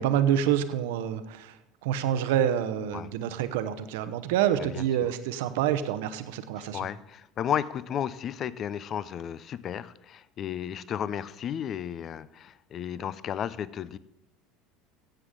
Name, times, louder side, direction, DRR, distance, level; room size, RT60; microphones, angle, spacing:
voice 1, 0.0-1.6 1.8-6.9, right 10 dB, 70° right, 11 dB, 0.8 m, -27 dB
voice 2, 6.6-14.0, left 9 dB, 45° left, 18 dB, 0.5 m, -33 dB
15.5 x 7.9 x 3.7 m, 0.87 s
hypercardioid pair, 75°, 0 cm